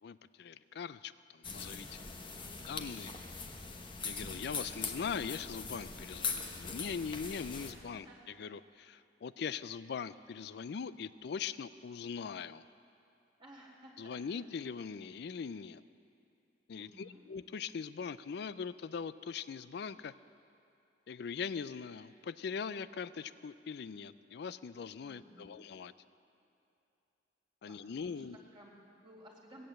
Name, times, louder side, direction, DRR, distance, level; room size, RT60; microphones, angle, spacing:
voice 1, 0.0-2.1 2.7-3.1 4.0-12.6 14.0-15.8 16.7-20.1 21.1-25.9 27.6-28.4, left 6 dB, 60° left, 16 dB, 0.4 m, -41 dB
sound 1, 1.4-7.7, left 4 dB, 30° left, 0.9 m, -41 dB
voice 2, 2.3-2.9 7.5-8.2 13.4-14.2 16.7-17.3 25.0-25.6 27.6-29.6, equal, 25° right, -3 dB, 2.1 m, -57 dB
17.0 x 8.6 x 7.6 m, 2.8 s
head